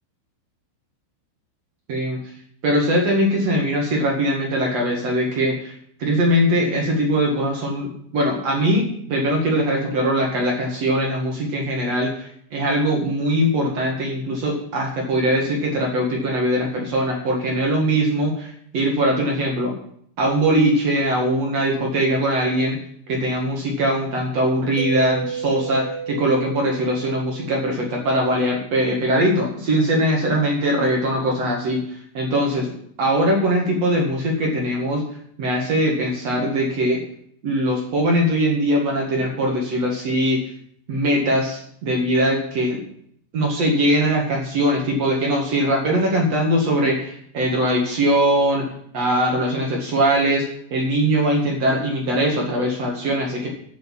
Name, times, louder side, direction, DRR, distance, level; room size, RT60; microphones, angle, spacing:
voice 1, 1.9-2.2 2.6-5.7 6.0-19.7 20.2-22.8 23.1-31.8 32.1-32.6 33.0-35.0 35.4-37.0 37.4-40.4 40.9-42.8 43.3-48.7 48.9-50.5 50.7-53.5, right 1 dB, 55° right, -1 dB, 1.8 m, -21 dB
Mallet percussion, 24.8-28.5, right 7 dB, 85° right, 3.2 m, -33 dB
8.6 x 8.3 x 7.4 m, 0.67 s
omnidirectional pair, 5.9 m